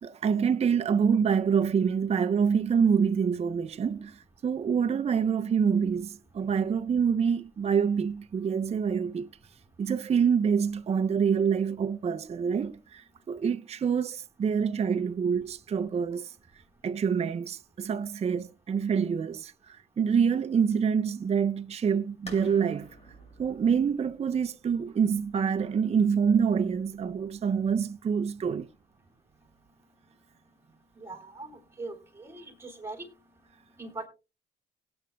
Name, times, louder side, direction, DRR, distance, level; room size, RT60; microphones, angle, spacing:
voice 1, 0.0-9.3 9.8-16.3 16.8-22.9 23.4-28.7, right 6 dB, 35° right, 0.5 m, -26 dB
sound 1, 22.3-27.7, left 1 dB, 30° left, 5.2 m, -51 dB
voice 2, 31.0-31.5 31.8-33.1 33.8-34.1, right 3 dB, 10° right, 3.5 m, -40 dB
17.5 x 8.7 x 2.2 m
cardioid pair, 90°, 20 cm